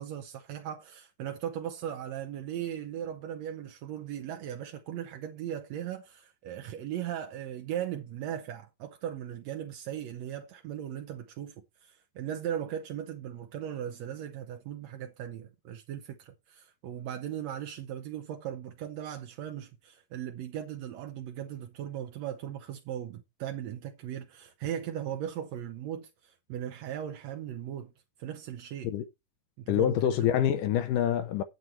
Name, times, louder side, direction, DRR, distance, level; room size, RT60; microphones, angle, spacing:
voice 1, 0.0-27.9 28.2-28.9 29.6-30.0, right 10 dB, 75° right, 1.6 m, -38 dB
voice 2, 29.7-31.4, left 10 dB, 75° left, 2.1 m, -26 dB
9.6 x 8.0 x 4.5 m
omnidirectional pair, 4.1 m